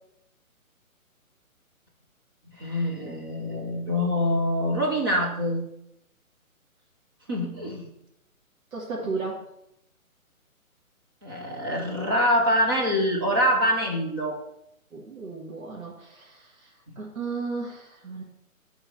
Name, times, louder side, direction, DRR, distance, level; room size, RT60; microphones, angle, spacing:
voice 1, 2.6-5.6 7.3-7.9 11.2-14.4, equal, 15° right, -2 dB, 0.6 m, -25 dB
voice 2, 8.7-9.4 14.9-18.2, right 4 dB, 70° right, -3 dB, 1.7 m, -35 dB
7.4 x 3.9 x 6.5 m, 0.79 s
figure-of-eight pair, 145°, 43 cm